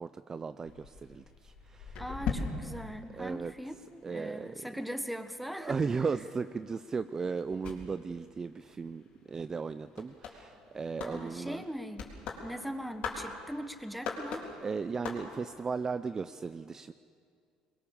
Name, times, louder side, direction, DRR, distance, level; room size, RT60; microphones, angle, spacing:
voice 1, 0.0-2.0 3.1-3.5 4.0-4.7 5.6-11.6 14.6-16.9, right 5 dB, 25° right, 12 dB, 0.5 m, -36 dB
sound 1, 0.6-4.1 4.4-15.6, left 5 dB, 65° left, 3.9 m, -42 dB
voice 2, 2.0-5.7 11.0-12.1 12.4-14.5, equal, ahead, 9 dB, 1.3 m, -40 dB
22.0 x 21.0 x 7.1 m, 2.3 s
cardioid pair, 105°, 2 cm